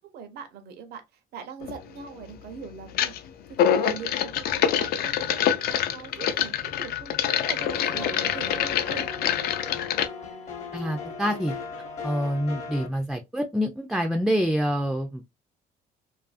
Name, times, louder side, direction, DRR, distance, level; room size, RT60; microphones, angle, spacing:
voice 1, 0.1-1.0 1.3-3.1 3.6-7.1 7.5-9.4, right 6 dB, 70° right, 0.6 m, -41 dB
sound 1, 1.6-1.8 2.9-3.2 3.5-10.1, left 9 dB, 65° left, 0.4 m, -25 dB
sound 2, 7.6-12.9, left 5 dB, 40° left, 0.8 m, -37 dB
voice 2, 10.7-11.5 12.0-15.2, equal, ahead, 0.3 m, -26 dB
2.6 x 2.5 x 2.4 m
cardioid pair, 110°, 17 cm